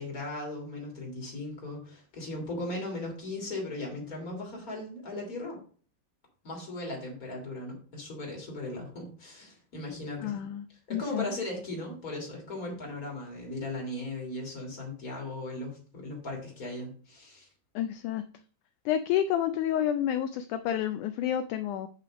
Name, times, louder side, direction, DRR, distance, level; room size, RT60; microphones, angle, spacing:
voice 1, 0.0-5.6 6.4-10.3 10.7-17.5, left 2 dB, 25° left, 0 dB, 3.0 m, -37 dB
voice 2, 10.2-10.6 10.9-11.2 17.7-18.2 18.8-21.9, left 10 dB, 85° left, 10 dB, 1.7 m, -29 dB
8.6 x 5.6 x 5.1 m, 0.43 s
omnidirectional pair, 4.2 m